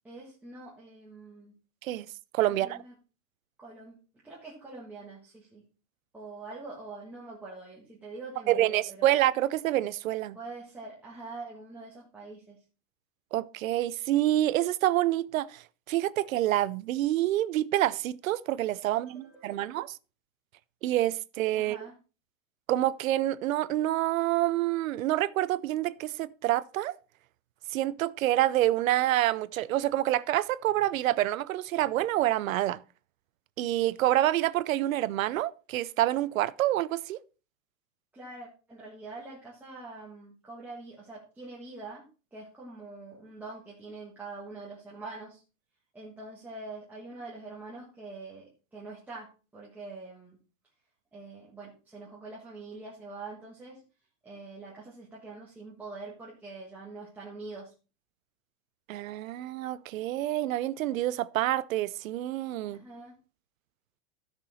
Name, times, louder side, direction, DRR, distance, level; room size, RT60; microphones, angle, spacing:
voice 1, 0.0-1.5 2.6-2.9 3.6-4.0 4.2-5.6 6.1-9.1 10.3-12.6 18.9-19.7 21.6-21.9 38.1-42.0 42.3-45.4 45.9-50.4 51.1-53.8 54.2-57.7 62.7-63.2, right 3 dB, 5° right, 1.5 m, -44 dB
voice 2, 2.3-2.8 8.5-10.4 13.3-20.0 20.8-21.8 22.7-27.0 27.7-32.8 33.6-37.2 58.9-62.8, right 14 dB, 90° right, 0.8 m, -27 dB
13.5 x 6.1 x 4.3 m
supercardioid pair, 175°, 39 cm